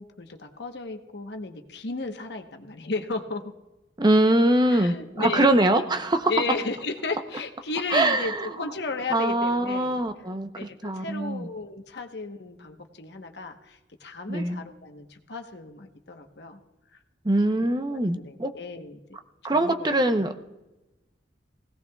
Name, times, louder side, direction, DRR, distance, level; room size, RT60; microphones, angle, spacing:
voice 1, 0.0-3.5 4.7-5.8 6.3-10.0 10.5-16.6 17.5-19.0 19.5-20.2, left 3 dB, 70° left, 5 dB, 1.1 m, -34 dB
voice 2, 4.0-6.3 7.9-8.7 9.1-11.5 14.3-14.6 17.2-18.5 19.4-20.3, right 1 dB, 25° right, 7 dB, 0.8 m, -23 dB
20.5 x 17.0 x 2.3 m, 1.0 s
head